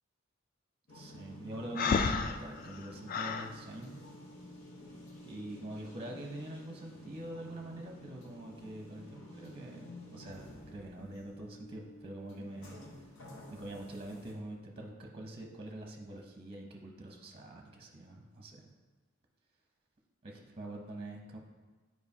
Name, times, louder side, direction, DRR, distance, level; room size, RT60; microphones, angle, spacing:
sound 1, 0.9-14.3, left 1 dB, 85° left, 1.1 m, -51 dB
voice 1, 0.9-4.0 5.2-12.8 13.5-18.7 20.2-21.4, right 1 dB, 25° right, 1 dB, 0.7 m, -45 dB
Breathing, 1.8-3.5, left 5 dB, 45° left, 0.3 m, -31 dB
9.3 x 4.7 x 2.8 m, 1.4 s
head